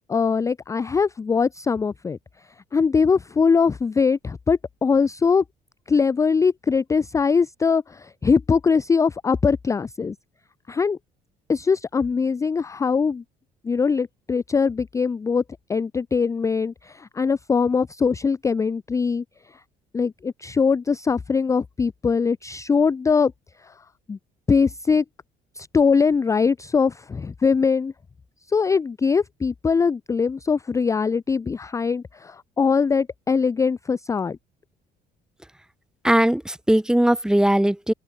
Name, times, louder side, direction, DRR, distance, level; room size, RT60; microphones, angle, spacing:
voice 1, 0.1-2.2 2.7-5.4 5.9-10.2 10.7-11.0 11.5-13.2 13.6-15.4 15.7-19.2 19.9-23.3 23.6-23.7 24.1-24.2 24.5-25.0 25.6-27.9 28.5-34.4, left 5 dB, 20° left, 0.4 m, -22 dB
voice 2, 36.0-37.9, right 1 dB, 5° right, 0.8 m, -19 dB
open air
cardioid pair, 110°, 17 cm